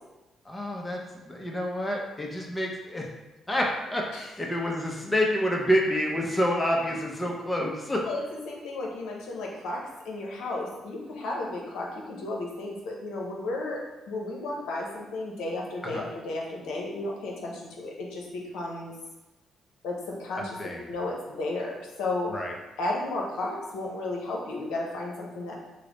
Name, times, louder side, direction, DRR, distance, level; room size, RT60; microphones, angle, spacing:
voice 1, 0.5-3.1 3.5-8.0 15.8-16.0 20.6-20.8 22.3-22.5, equal, 15° left, 0 dB, 0.6 m, -28 dB
voice 2, 8.0-18.9 19.8-20.6 20.9-22.3 22.8-25.5, left 2 dB, 85° left, -2 dB, 0.7 m, -33 dB
3.2 x 2.0 x 3.8 m, 1.1 s
cardioid pair, 90°, 0 cm